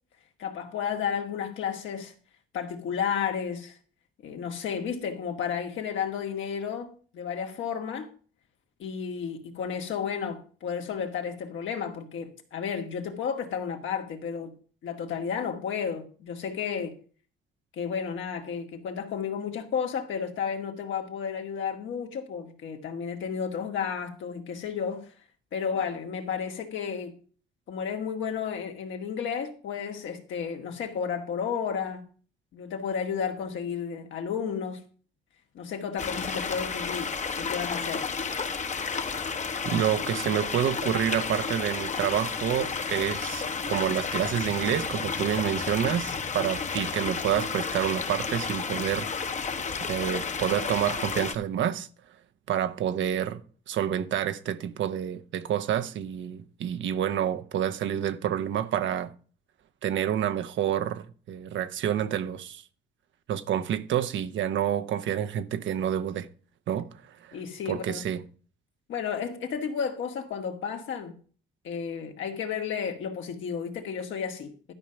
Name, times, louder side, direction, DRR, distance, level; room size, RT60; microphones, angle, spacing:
voice 1, 0.4-2.1 2.5-3.8 4.2-8.1 8.8-14.5 14.8-17.0 17.7-25.1 25.5-27.2 27.7-32.1 32.5-34.8 35.5-38.1 67.3-68.0 68.9-71.2 71.6-74.7, left 7 dB, 75° left, 2.0 m, -32 dB
sound 1, 36.0-51.3, left 5 dB, 35° left, 1.0 m, -32 dB
voice 2, 39.6-49.3 49.8-51.9 52.5-53.4 53.7-59.1 59.8-62.6 63.3-66.3 66.7-66.9 67.2-67.4 67.7-68.2, right 10 dB, 75° right, 0.9 m, -28 dB
12.0 x 5.2 x 5.8 m
cardioid pair, 90°, 20 cm